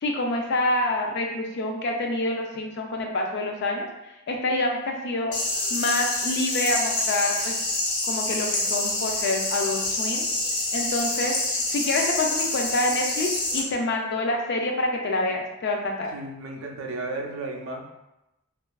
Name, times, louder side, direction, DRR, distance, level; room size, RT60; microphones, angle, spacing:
voice 1, 0.0-3.9 4.3-5.3 5.7-7.6 8.1-10.3 10.7-11.3 11.7-16.1, left 2 dB, 50° left, 2 dB, 0.4 m, -27 dB
sound 1, 5.3-13.6, left 2 dB, 80° left, 0.7 m, -27 dB
voice 2, 16.1-17.9, right 2 dB, 70° right, 2 dB, 0.4 m, -34 dB
2.6 x 2.3 x 2.2 m, 0.93 s
head